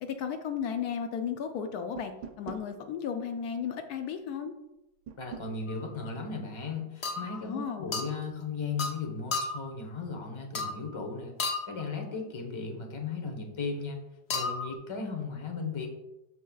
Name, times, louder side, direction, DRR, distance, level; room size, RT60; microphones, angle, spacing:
voice 1, 0.0-4.5 7.4-8.0, left 7 dB, 75° left, 7 dB, 1.1 m, -34 dB
sound 1, 2.0-2.7 5.1-5.5, right 7 dB, 90° right, 1.2 m, -43 dB
voice 2, 5.2-11.4 11.7-14.0 14.3-15.9, left 4 dB, 20° left, 2 dB, 0.9 m, -36 dB
sound 2, 5.7-5.9 7.0-7.4 7.9-8.2 8.8-9.0 9.3-9.7 10.5-10.9 11.4-11.8 14.3-14.7, left 3 dB, 55° left, 0.8 m, -33 dB
13.0 x 4.3 x 2.3 m, 0.92 s
omnidirectional pair, 1.7 m